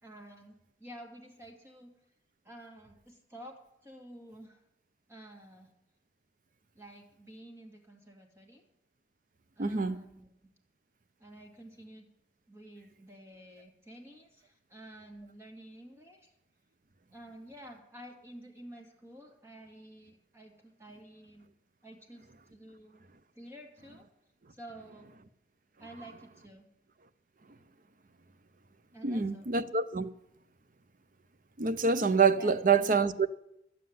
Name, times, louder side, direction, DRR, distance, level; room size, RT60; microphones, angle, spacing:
voice 1, 0.0-1.9 2.4-4.6 5.1-5.8 6.8-8.6 9.6-10.5 11.2-12.1 12.5-16.3 17.1-21.5 21.8-23.1 23.3-24.1 24.5-25.1 25.8-26.7 28.9-29.5 32.4-33.1, right 1 dB, 15° right, 2.0 m, -51 dB
voice 2, 9.6-10.0 29.0-30.1 31.6-33.3, right 5 dB, 45° right, 0.6 m, -26 dB
11.5 x 7.6 x 9.4 m
head